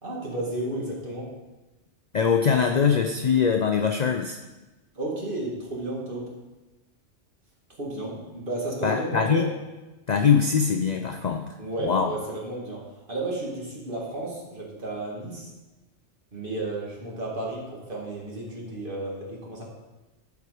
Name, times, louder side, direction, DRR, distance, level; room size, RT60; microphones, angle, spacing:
voice 1, 0.0-1.3 5.0-6.3 7.8-9.5 11.6-15.5 16.3-19.6, right 2 dB, 45° right, -3 dB, 2.1 m, -33 dB
voice 2, 2.1-4.4 8.8-9.5 10.1-11.5 11.8-12.1, left 6 dB, 50° left, 4 dB, 0.5 m, -22 dB
11.5 x 4.8 x 4.9 m, 1.1 s
omnidirectional pair, 1.2 m